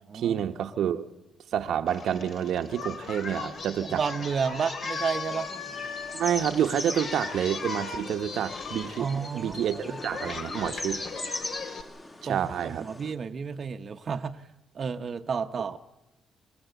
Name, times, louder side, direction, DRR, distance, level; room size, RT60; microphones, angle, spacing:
voice 1, 0.1-1.1 1.5-4.0 6.1-11.0 12.2-12.9, right 9 dB, 70° right, 7 dB, 1.0 m, -28 dB
Singing, 1.9-11.8, left 4 dB, 55° left, 2.5 m, -37 dB
voice 2, 3.9-5.5 9.0-10.0 12.3-14.4 14.7-15.8, right 6 dB, 45° right, 6 dB, 0.9 m, -31 dB
sound 1, 5.3-13.1, left 1 dB, 20° left, 1.9 m, -40 dB
25.5 x 16.5 x 8.1 m, 1.0 s
cardioid pair, 90°, 0 cm